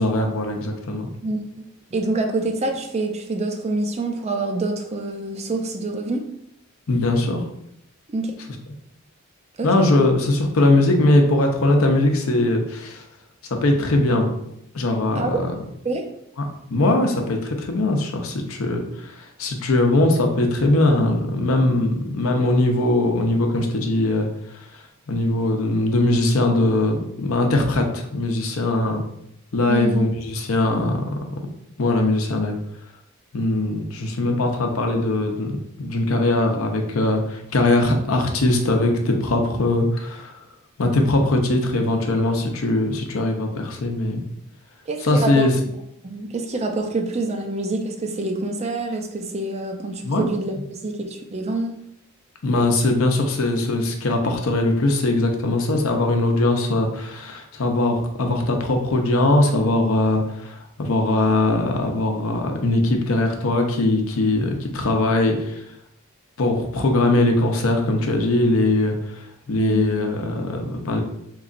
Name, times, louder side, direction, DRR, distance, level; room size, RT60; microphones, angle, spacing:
voice 1, 0.0-1.1 6.9-7.4 9.6-13.0 13.6-14.3 14.7-15.4 16.7-24.3 25.1-29.0 29.5-31.4 31.8-32.6 33.3-40.3 40.8-44.2 45.0-45.5 50.0-50.3 52.4-65.6 66.4-71.0, left 2 dB, 75° left, 3 dB, 0.6 m, -21 dB
voice 2, 1.2-6.3 8.1-8.3 9.6-9.7 15.2-15.4 15.8-16.0 29.7-30.0 44.9-45.5 46.0-51.8 69.6-70.0, right 2 dB, 30° right, 4 dB, 0.4 m, -26 dB
3.8 x 3.0 x 2.5 m, 0.76 s
head